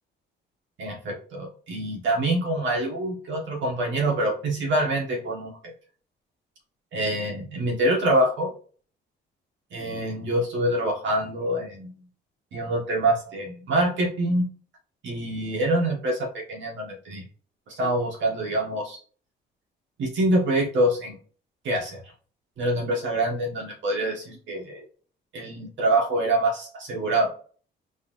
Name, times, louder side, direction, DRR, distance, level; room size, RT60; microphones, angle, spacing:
voice 1, 0.8-5.7 6.9-8.5 9.7-11.9 12.5-14.4 15.0-17.2 17.7-19.0 20.0-21.2 21.6-22.0 22.6-24.8 25.3-27.3, right 1 dB, 70° right, 0 dB, 1.6 m, -25 dB
4.0 x 3.5 x 2.6 m, 0.42 s
cardioid pair, 90°, 20 cm